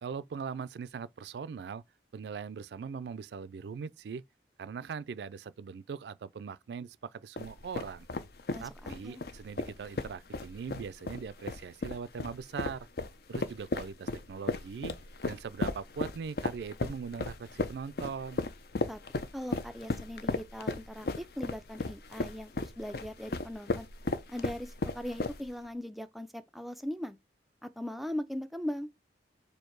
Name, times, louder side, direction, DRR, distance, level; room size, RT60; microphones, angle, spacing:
voice 1, 0.0-1.8 2.1-4.2 4.6-8.1 8.6-12.9 13.3-15.0 15.2-18.5, right 6 dB, 70° right, 0.3 m, -40 dB
sound 1, 7.4-25.7, left 3 dB, 60° left, 0.6 m, -35 dB
voice 2, 8.5-9.2 18.9-19.0 19.3-23.9 24.3-27.2 27.6-28.9, left 1 dB, ahead, 0.4 m, -39 dB
4.5 x 2.7 x 4.5 m
head